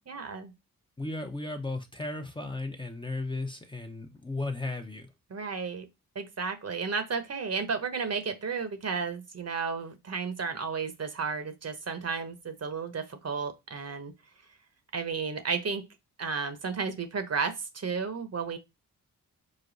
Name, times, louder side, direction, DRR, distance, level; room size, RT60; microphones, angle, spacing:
voice 1, 0.1-0.5 5.3-5.9 6.1-14.1 14.9-15.8 16.2-18.6, right 5 dB, 45° right, 1.0 m, -33 dB
voice 2, 1.0-5.1, left 2 dB, 15° left, 0.8 m, -35 dB
5.1 x 2.2 x 3.9 m
supercardioid pair, 55°, 35 cm